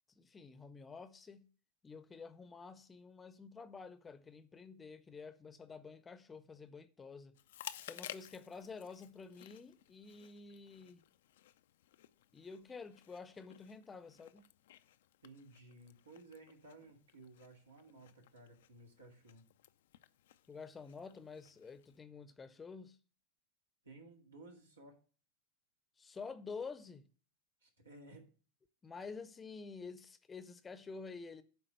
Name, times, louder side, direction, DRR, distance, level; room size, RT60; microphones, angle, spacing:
voice 1, 0.2-1.5 1.8-7.4 7.8-11.0 12.3-14.5 20.5-23.0 26.0-27.1 28.8-31.4, left 4 dB, 20° left, 0.7 m, -49 dB
Chewing mastication, 7.3-22.0, left 12 dB, 70° left, 0.4 m, -56 dB
voice 2, 15.2-19.4 23.8-25.0 27.6-28.3, right 2 dB, 90° right, 2.0 m, -57 dB
9.2 x 3.7 x 6.6 m
hypercardioid pair, 100°, 0 cm